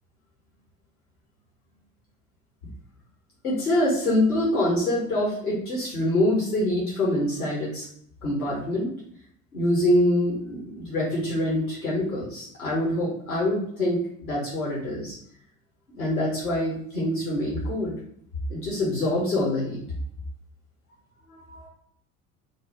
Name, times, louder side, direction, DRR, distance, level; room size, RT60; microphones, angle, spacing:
voice 1, 3.4-7.8 8.2-8.9 9.5-15.1 15.9-18.0 18.5-19.8 21.3-21.7, left 1 dB, 80° left, -4 dB, 1.2 m, -25 dB
3.4 x 2.1 x 4.3 m, 0.65 s
figure-of-eight pair, 60°, 44 cm